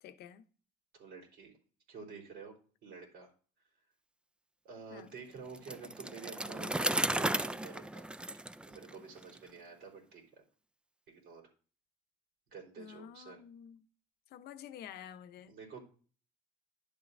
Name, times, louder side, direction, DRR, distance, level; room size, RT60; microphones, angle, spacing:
voice 1, 0.0-0.5 4.9-5.1 12.8-13.8 14.3-15.6, left 9 dB, 70° left, 0.8 m, -50 dB
voice 2, 0.9-1.5 1.9-2.5 2.8-3.3 4.6-8.1 8.7-10.4 11.1-11.4 12.5-13.4 15.5-15.8, right 5 dB, 70° right, 3.8 m, -49 dB
Bicycle, 5.5-9.4, right 1 dB, 5° right, 0.3 m, -35 dB
11.0 x 7.2 x 2.6 m
cardioid pair, 110°, 17 cm